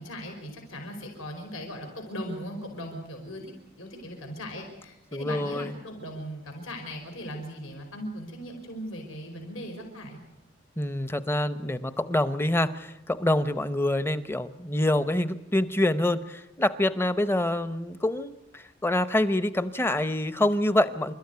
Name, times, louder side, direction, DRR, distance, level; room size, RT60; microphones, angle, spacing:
voice 1, 0.0-10.2, equal, 75° left, 2 dB, 5.0 m, -38 dB
voice 2, 5.1-5.7 10.8-21.1, left 1 dB, 10° left, 13 dB, 0.8 m, -26 dB
28.0 x 13.5 x 9.5 m, 0.91 s
head